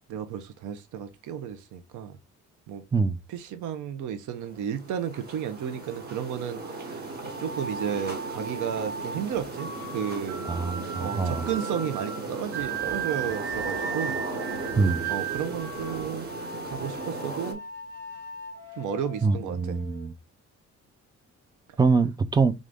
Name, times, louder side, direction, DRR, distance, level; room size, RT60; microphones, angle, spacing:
voice 1, 0.1-2.2 2.7-2.8 3.3-7.1 7.4-10.5 11.0-14.2 15.1-16.3 16.6-17.6 18.8-19.8, right 8 dB, 90° right, 0.6 m, -33 dB
sound 1, 4.3-17.5, right 3 dB, 35° right, 1.1 m, -37 dB
sound 2, 7.3-20.1, right 5 dB, 55° right, 1.0 m, -37 dB
voice 2, 10.5-11.5 14.8-15.0 19.2-20.1 21.8-22.5, right 4 dB, 15° right, 0.4 m, -24 dB
3.6 x 2.6 x 3.3 m
cardioid pair, 110°, 30 cm